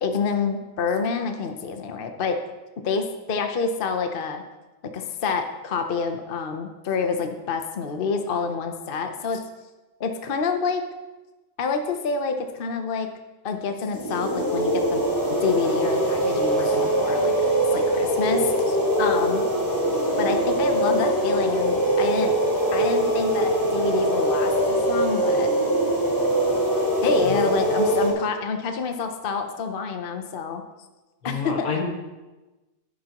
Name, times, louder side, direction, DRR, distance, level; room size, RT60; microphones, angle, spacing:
voice 1, 0.0-2.4 2.8-4.4 4.9-9.4 10.0-10.8 11.6-13.1 13.4-15.0 15.4-19.4 20.2-22.3 22.7-25.5 27.0-30.6 31.2-31.7, left 5 dB, 45° left, 6 dB, 0.7 m, -27 dB
sound 1, 13.9-28.1, right 1 dB, 10° left, 2.7 m, -22 dB
voice 2, 31.2-31.8, left 6 dB, 65° left, 0 dB, 2.2 m, -30 dB
11.5 x 11.5 x 3.0 m, 1.1 s
omnidirectional pair, 1.7 m